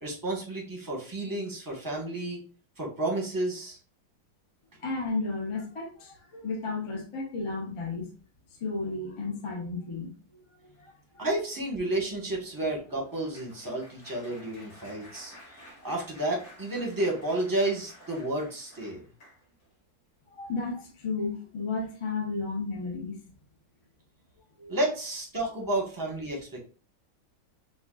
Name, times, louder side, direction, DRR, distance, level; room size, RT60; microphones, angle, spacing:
voice 1, 0.0-2.4 2.8-3.8 11.2-19.0 24.7-26.6, right 1 dB, 15° right, 0.7 m, -31 dB
voice 2, 4.8-8.1 8.6-10.1 10.8-11.2 20.4-23.2 24.6-24.8, left 3 dB, 40° left, 0.4 m, -33 dB
Applause, 11.4-19.7 20.3-20.6 20.9-21.1, left 1 dB, 85° left, 2.9 m, -53 dB
5.4 x 2.4 x 2.3 m
omnidirectional pair, 2.1 m